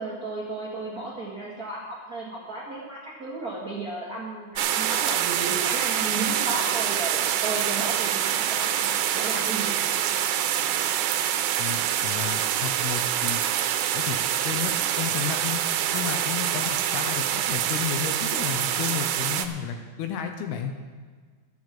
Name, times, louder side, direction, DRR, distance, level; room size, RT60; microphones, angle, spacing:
voice 1, 0.0-9.8, right 2 dB, 50° right, -5 dB, 1.1 m, -34 dB
sound 1, 4.6-19.5, right 10 dB, 85° right, 2.8 m, -26 dB
voice 2, 11.6-13.4 13.9-14.2 14.4-15.6 15.9-20.7, left 8 dB, 75° left, 5 dB, 2.5 m, -32 dB
12.5 x 7.7 x 7.6 m, 1.6 s
omnidirectional pair, 4.9 m